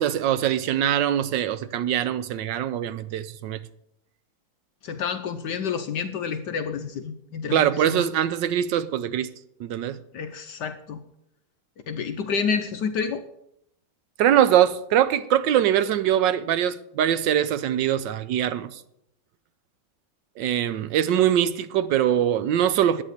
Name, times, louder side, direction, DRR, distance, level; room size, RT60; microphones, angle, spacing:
voice 1, 0.0-3.6 7.5-9.3 9.6-10.0 14.2-18.8 20.4-23.0, right 10 dB, 70° right, 1.2 m, -22 dB
voice 2, 4.8-8.1 10.1-11.0 11.9-13.2, left 6 dB, 65° left, 1.2 m, -29 dB
11.0 x 8.9 x 6.6 m
omnidirectional pair, 2.2 m